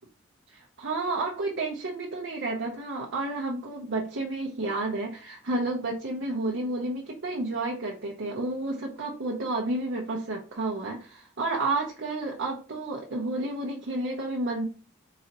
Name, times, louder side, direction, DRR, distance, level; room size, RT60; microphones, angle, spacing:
voice 1, 0.5-14.6, right 2 dB, 60° right, -1 dB, 0.8 m, -31 dB
4.1 x 3.9 x 2.9 m, 0.37 s
head